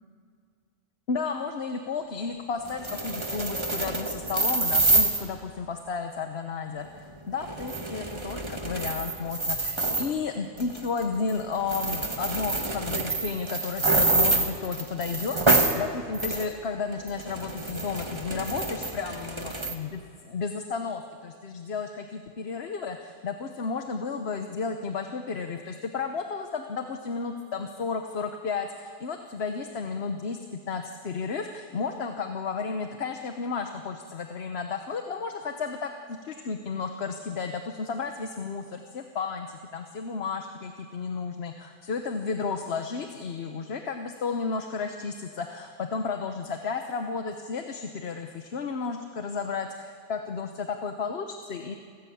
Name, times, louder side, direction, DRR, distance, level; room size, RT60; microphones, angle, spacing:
voice 1, 1.1-30.4 30.7-51.8, left 5 dB, 60° left, 5 dB, 1.2 m, -33 dB
sound 1, 2.6-5.2 7.4-10.1 10.6-11.0 11.3-11.4 11.7-15.8 16.1-16.5 16.9-19.7, right 2 dB, 25° right, 1.5 m, -27 dB
29.0 x 14.0 x 8.6 m, 2.2 s
omnidirectional pair, 1.2 m